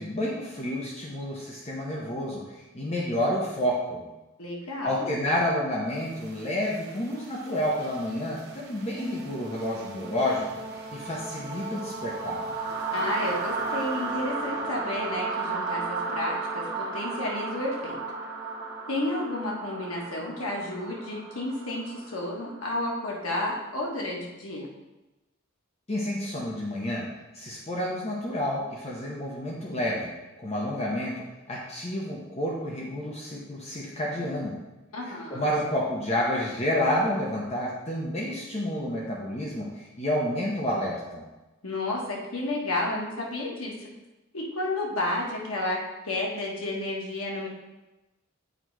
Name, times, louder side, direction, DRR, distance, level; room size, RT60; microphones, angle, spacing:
voice 1, 0.0-4.1 4.8-12.4 25.9-34.6 35.0-41.2, left 1 dB, 30° left, -4 dB, 0.8 m, -30 dB
voice 2, 4.4-5.1 12.9-18.0 18.9-24.7 34.9-35.5 41.6-43.9 44.3-47.5, left 2 dB, 75° left, -2 dB, 1.4 m, -31 dB
sound 1, 6.0-23.8, right 4 dB, 50° right, 0.9 m, -35 dB
8.0 x 3.0 x 4.6 m, 1.0 s
head